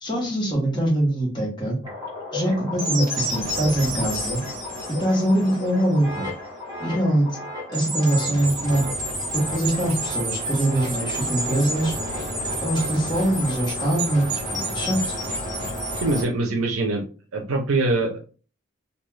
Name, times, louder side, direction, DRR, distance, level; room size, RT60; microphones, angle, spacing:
voice 1, 0.0-1.8 2.3-4.4 4.9-6.3 6.8-7.4 7.7-8.8 9.3-12.0 12.6-15.2, right 1 dB, 20° left, -3 dB, 0.9 m, -23 dB
sound 1, 1.8-16.2, equal, 20° right, 0.9 m, -30 dB
voice 2, 16.0-17.0 17.3-18.2, right 2 dB, 80° right, 1 dB, 0.5 m, -23 dB
2.3 x 2.3 x 3.1 m, 0.38 s
head